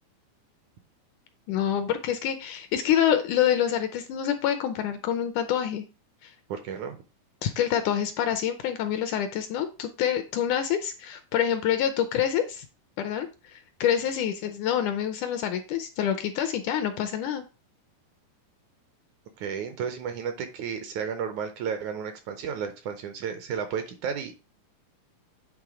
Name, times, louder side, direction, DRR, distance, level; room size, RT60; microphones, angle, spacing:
voice 1, 1.5-5.9 6.2-6.4 7.4-12.7 13.0-17.4, left 9 dB, 80° left, 9 dB, 1.9 m, -27 dB
voice 2, 6.5-7.0 19.4-24.3, right 7 dB, 75° right, 8 dB, 1.9 m, -33 dB
8.9 x 3.5 x 4.8 m, 0.31 s
omnidirectional pair, 4.0 m